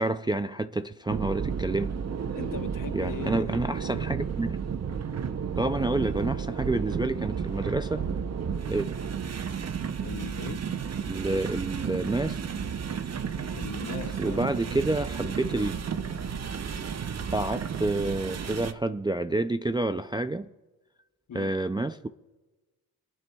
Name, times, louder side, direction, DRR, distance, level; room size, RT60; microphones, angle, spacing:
voice 1, 0.0-2.0 2.9-4.6 5.6-8.1 8.7-8.9 11.1-12.4 14.2-15.8 17.3-20.5 21.3-22.1, right 2 dB, 15° right, 0.3 m, -28 dB
sound 1, 1.1-18.7, right 7 dB, 40° right, 0.7 m, -32 dB
voice 2, 2.3-3.6 10.0-10.6 13.5-14.4 21.3-21.5, left 7 dB, 55° left, 0.8 m, -39 dB
26.0 x 9.1 x 2.3 m
cardioid pair, 95°, 39 cm